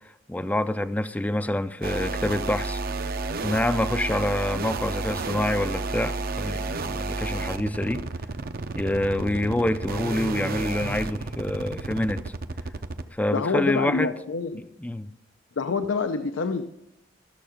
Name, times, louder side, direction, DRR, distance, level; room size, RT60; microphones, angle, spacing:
voice 1, 0.3-2.8 3.4-8.1 8.7-12.3 13.1-14.1 14.5-15.1, left 1 dB, 10° left, 0.4 m, -27 dB
sound 1, 1.8-13.1, right 3 dB, 50° right, 0.6 m, -31 dB
voice 2, 13.3-14.6 15.6-16.6, left 4 dB, 90° left, 0.6 m, -27 dB
13.5 x 6.9 x 5.0 m
head